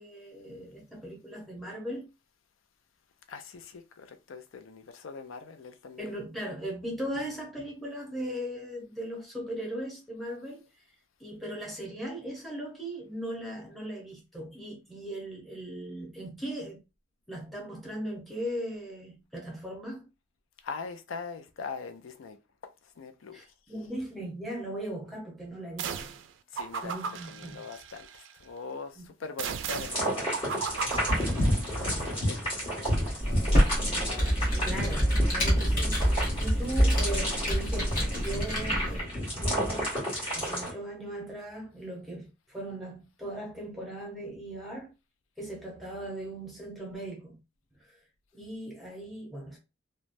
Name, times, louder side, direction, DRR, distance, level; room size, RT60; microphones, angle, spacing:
voice 1, 0.0-2.1 6.0-10.6 11.2-16.8 17.3-20.1 23.3-26.1 26.8-27.6 29.0-29.1 34.6-44.9 45.4-47.4 48.3-49.6, right 1 dB, ahead, 0.9 m, -38 dB
voice 2, 3.3-6.1 20.6-22.4 22.8-23.5 23.8-23.9 26.5-33.5 36.0-36.2, left 5 dB, 85° left, 0.4 m, -43 dB
sound 1, 25.8-26.3 26.6-28.3 29.4-32.0, right 6 dB, 70° right, 0.3 m, -36 dB
sound 2, 29.8-40.7, equal, 30° left, 1.6 m, -31 dB
Computer keyboard, 33.2-39.0, equal, 45° left, 1.2 m, -26 dB
3.1 x 2.1 x 2.5 m
head